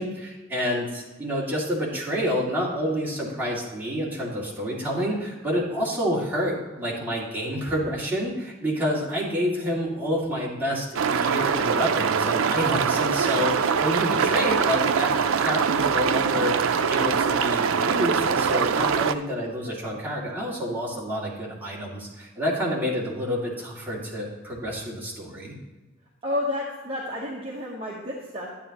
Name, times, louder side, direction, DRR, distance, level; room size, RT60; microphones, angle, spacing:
voice 1, 0.0-15.1 15.4-16.6 16.9-25.5, equal, 10° right, -7 dB, 2.3 m, -28 dB
sound 1, 10.9-19.1, right 6 dB, 90° right, 0.5 m, -23 dB
voice 2, 26.2-28.5, left 1 dB, 30° right, -4 dB, 1.1 m, -30 dB
11.0 x 8.9 x 3.0 m, 1.2 s
head